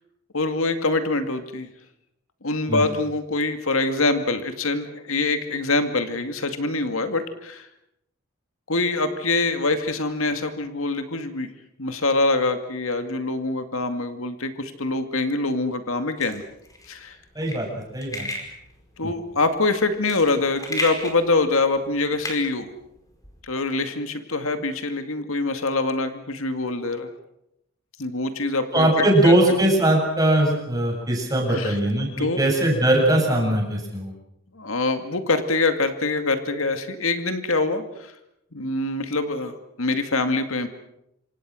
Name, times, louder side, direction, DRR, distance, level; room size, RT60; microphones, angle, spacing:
voice 1, 0.3-1.7 2.4-7.7 8.7-11.5 11.8-16.4 16.8-17.2 19.0-22.7 23.4-27.1 28.0-29.3 31.5-31.8 32.2-32.4 34.5-38.1 38.5-40.7, left 3 dB, 75° left, 8 dB, 2.2 m, -24 dB
sound 1, 16.2-23.4, left 1 dB, 15° left, 4.9 m, -35 dB
voice 2, 17.4-17.7 17.9-18.3 28.7-34.1, right 1 dB, 15° right, 0 dB, 7.7 m, -20 dB
27.5 x 26.0 x 6.4 m, 0.81 s
head